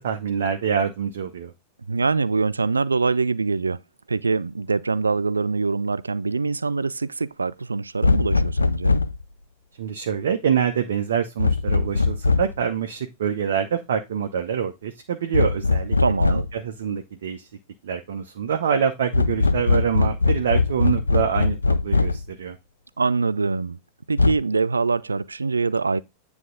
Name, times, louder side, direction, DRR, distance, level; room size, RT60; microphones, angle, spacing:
voice 1, 0.0-1.5 9.8-16.0 16.3-17.5 17.8-22.6, right 7 dB, 60° right, 0.8 m, -25 dB
voice 2, 1.9-3.8 4.1-8.9 16.0-16.4 23.0-23.8 24.1-26.0, right 4 dB, 80° right, 0.3 m, -24 dB
sound 1, 8.0-9.2 11.4-12.6 15.3-16.6 19.1-22.3 24.2-24.4, left 3 dB, 80° left, 0.4 m, -21 dB
9.3 x 3.5 x 3.8 m
figure-of-eight pair, 90°, 0 cm